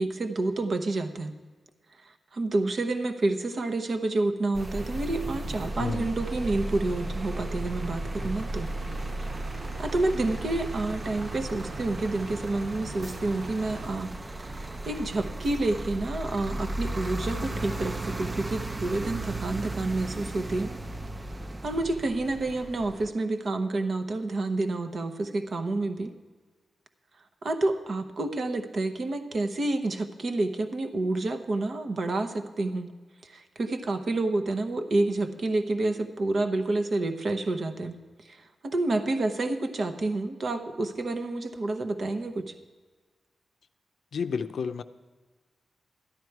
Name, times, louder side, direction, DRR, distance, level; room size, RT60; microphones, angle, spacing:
voice 1, 0.0-1.3 2.0-8.7 9.8-14.1 14.5-20.7 21.6-26.1 27.4-32.9 33.2-38.0 38.2-42.5, right 2 dB, 50° right, 7 dB, 0.9 m, -29 dB
sound 1, 4.5-23.1, right 2 dB, 20° right, 0.4 m, -35 dB
sound 2, 4.7-13.9, right 1 dB, 90° right, 2.0 m, -43 dB
voice 2, 44.1-44.8, left 5 dB, 75° left, 10 dB, 0.5 m, -30 dB
13.0 x 11.0 x 4.6 m, 1.4 s
wide cardioid pair, 140°, 0 cm